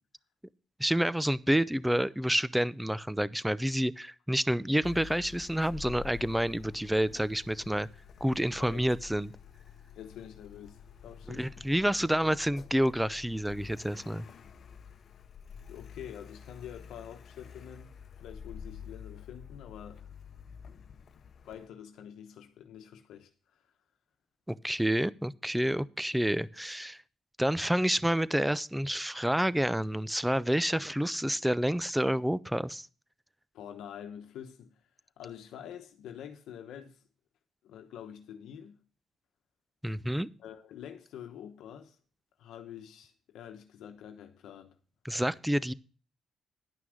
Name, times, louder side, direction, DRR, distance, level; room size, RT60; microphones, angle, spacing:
voice 1, 0.8-7.9 8.2-9.3 11.3-14.3 24.5-27.0 27.4-32.9 39.8-40.3 45.0-45.7, equal, 5° right, 0.4 m, -29 dB
Car, 4.8-21.7, left 7 dB, 55° left, 0.8 m, -49 dB
voice 2, 9.9-11.5 15.7-20.1 20.6-23.3 33.5-34.7 35.2-37.0 37.6-38.8 40.4-42.0 42.4-44.7, left 9 dB, 80° left, 1.0 m, -47 dB
11.0 x 5.9 x 6.3 m
cardioid pair, 90°, 0 cm